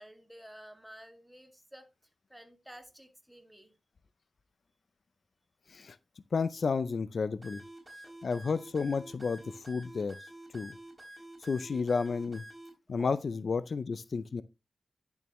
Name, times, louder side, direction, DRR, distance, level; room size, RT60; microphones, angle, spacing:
voice 1, 0.0-3.7 7.9-8.1 12.9-13.1 13.5-13.6, equal, 5° right, 2.0 m, -52 dB
voice 2, 6.3-7.6 8.2-10.2 10.5-10.7 11.4-12.4 12.9-14.4, left 5 dB, 70° left, 0.4 m, -31 dB
sound 1, 7.4-12.7, right 1 dB, 20° right, 4.6 m, -49 dB
10.5 x 7.0 x 3.1 m
cardioid pair, 65°, 0 cm